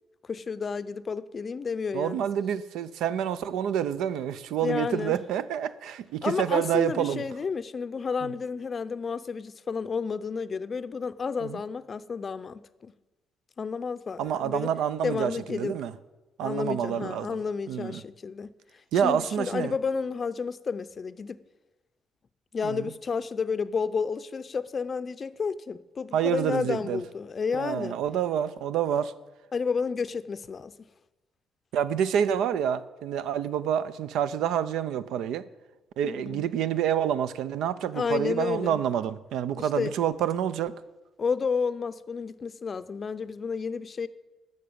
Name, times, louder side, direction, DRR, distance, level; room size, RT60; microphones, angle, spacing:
voice 1, 0.3-2.3 4.6-5.2 6.2-12.9 13.6-14.7 15.0-15.7 16.4-18.5 19.0-21.4 22.5-28.0 29.5-30.7 36.0-36.5 37.9-38.8 39.6-39.9 41.2-44.1, left 5 dB, 35° left, 0.5 m, -31 dB
voice 2, 1.9-7.2 8.2-8.3 11.4-11.6 14.2-15.9 16.4-17.4 17.7-18.0 18.9-19.7 22.6-22.9 26.1-27.0 27.5-29.1 31.7-35.5 36.0-40.8, right 9 dB, 80° right, 0.5 m, -28 dB
12.0 x 6.7 x 8.6 m
cardioid pair, 110°, 0 cm